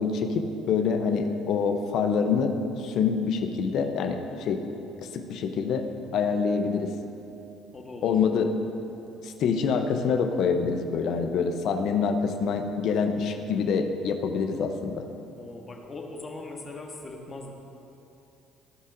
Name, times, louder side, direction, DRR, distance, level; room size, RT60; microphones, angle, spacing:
voice 1, 0.0-4.6 5.1-5.8 6.1-6.9 8.0-8.5 9.2-15.1, left 5 dB, 65° left, 6 dB, 0.7 m, -26 dB
voice 2, 7.7-8.1 15.4-17.5, left 2 dB, 30° left, 1 dB, 1.3 m, -40 dB
16.0 x 5.4 x 2.6 m, 3.0 s
supercardioid pair, 80°, 0 cm